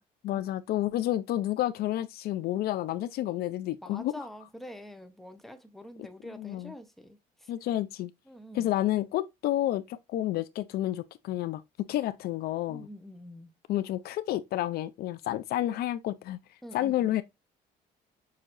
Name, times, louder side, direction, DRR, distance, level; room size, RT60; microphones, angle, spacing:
voice 1, 0.2-4.3 6.3-6.7 7.5-8.1 8.5-12.9 13.7-16.4 16.7-17.2, left 14 dB, 65° left, 0.4 m, -30 dB
voice 2, 3.8-7.5 8.3-8.7 12.7-13.5 16.6-17.2, equal, ahead, 0.8 m, -46 dB
6.4 x 2.8 x 2.5 m
cardioid pair, 110°, 17 cm